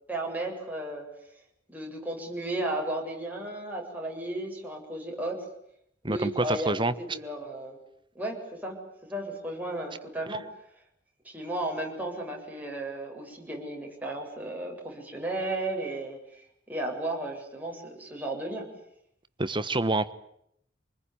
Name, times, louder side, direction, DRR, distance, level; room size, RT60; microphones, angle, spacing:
voice 1, 0.1-1.1 1.7-5.5 6.1-7.8 8.1-8.8 9.1-10.4 11.2-18.7, right 1 dB, 10° right, 0 dB, 7.8 m, -34 dB
voice 2, 6.0-6.9 19.4-20.1, right 2 dB, 25° right, 13 dB, 1.3 m, -27 dB
27.5 x 21.0 x 10.0 m, 0.73 s
head